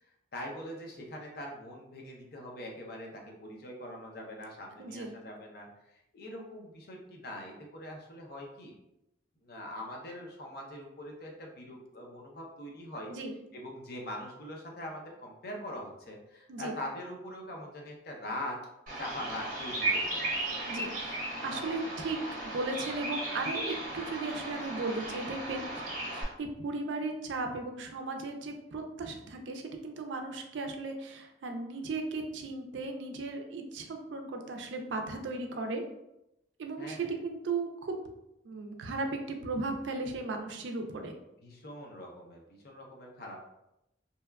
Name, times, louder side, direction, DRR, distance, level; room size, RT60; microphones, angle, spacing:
voice 1, 0.0-8.7 9.4-13.1 13.5-18.6 19.0-20.7 21.4-21.8 25.6-25.8 36.8-37.2 41.4-43.4, left 1 dB, 55° left, 0 dB, 0.5 m, -43 dB
voice 2, 4.8-5.1 13.1-13.3 16.5-16.8 20.7-25.7 26.1-35.8 36.6-38.0 38.4-41.1, right 3 dB, 75° right, 4 dB, 0.4 m, -36 dB
Bird vocalization bird call bird song, 18.9-26.2, right 2 dB, 45° right, 0.8 m, -35 dB
2.8 x 2.2 x 2.2 m, 0.87 s
head